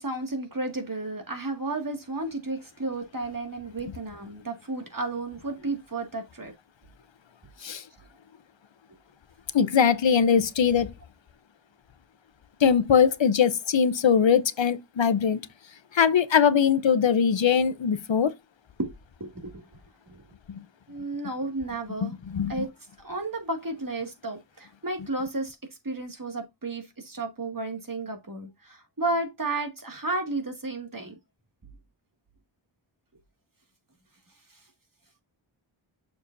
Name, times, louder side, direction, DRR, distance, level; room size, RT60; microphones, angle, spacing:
voice 1, 0.0-6.5 18.8-18.9 19.2-19.6 20.1-20.2 20.9-22.2 22.5-22.7 23.0-25.6 25.8-31.1, right 2 dB, 45° right, 2.0 m, -32 dB
voice 2, 9.5-10.9 12.6-15.4 15.9-18.3 22.0-22.5, left 7 dB, 70° left, 0.7 m, -21 dB
6.8 x 6.6 x 2.6 m
wide cardioid pair, 50°, 48 cm